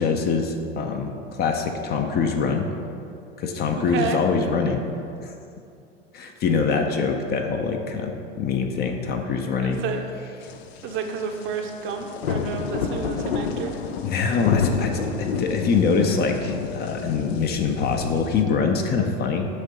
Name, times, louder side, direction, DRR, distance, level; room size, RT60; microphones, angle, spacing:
voice 1, 0.0-2.7 3.4-4.8 5.2-5.3 6.1-9.8 14.0-19.5, left 5 dB, 30° left, 4 dB, 0.6 m, -24 dB
voice 2, 3.8-4.2 9.6-10.0 10.8-13.7, right 5 dB, 40° right, 4 dB, 0.7 m, -30 dB
sound 1, 10.4-18.4, left 6 dB, 70° left, 0.6 m, -29 dB
6.5 x 3.6 x 5.4 m, 2.5 s
hypercardioid pair, 85°, 32 cm